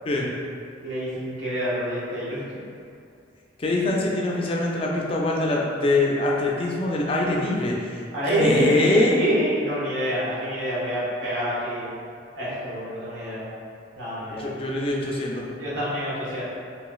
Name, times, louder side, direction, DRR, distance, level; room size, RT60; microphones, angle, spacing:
voice 1, 0.8-2.6 3.9-4.1 8.1-11.9 12.4-13.4 14.0-14.5 15.6-16.4, equal, 85° right, -10 dB, 1.2 m, -27 dB
voice 2, 3.6-8.0 8.3-9.2 14.4-15.5, left 2 dB, 30° left, -2 dB, 0.3 m, -23 dB
3.0 x 2.8 x 2.3 m, 2.4 s
head